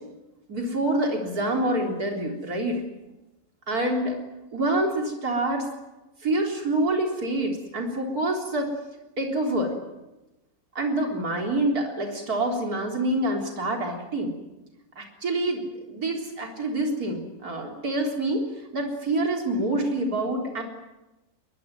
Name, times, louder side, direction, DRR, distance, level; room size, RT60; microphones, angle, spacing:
voice 1, 0.5-2.8 3.7-4.2 4.5-5.7 6.2-8.7 9.2-9.8 10.8-14.3 15.0-18.5 18.7-20.6, right 1 dB, 90° right, 1 dB, 4.3 m, -26 dB
23.0 x 22.0 x 9.4 m, 1.0 s
omnidirectional pair, 1.6 m